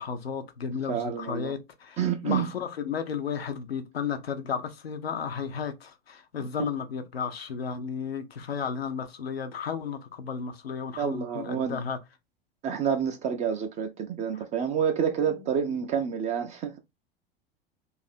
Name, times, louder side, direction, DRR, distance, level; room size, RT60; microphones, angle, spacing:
voice 1, 0.0-12.0, left 6 dB, 85° left, 0.5 m, -33 dB
voice 2, 0.9-1.5 2.0-2.5 11.0-11.8 12.6-16.8, right 7 dB, 25° right, 0.4 m, -28 dB
2.6 x 2.5 x 4.1 m
figure-of-eight pair, 90°, 30 cm